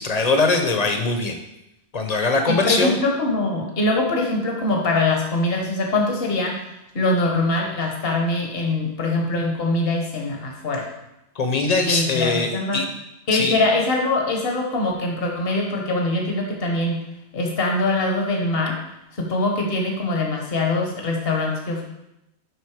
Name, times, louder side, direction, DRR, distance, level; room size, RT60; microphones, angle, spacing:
voice 1, 0.0-1.4 1.9-3.0 11.3-12.8 13.3-13.5, left 3 dB, 40° left, 5 dB, 1.0 m, -21 dB
voice 2, 2.5-6.7 6.9-10.9 11.9-12.8 13.3-17.0 17.3-18.8 19.1-21.8, left 2 dB, 60° left, 0 dB, 1.5 m, -23 dB
7.9 x 5.3 x 5.0 m, 0.87 s
omnidirectional pair, 1.1 m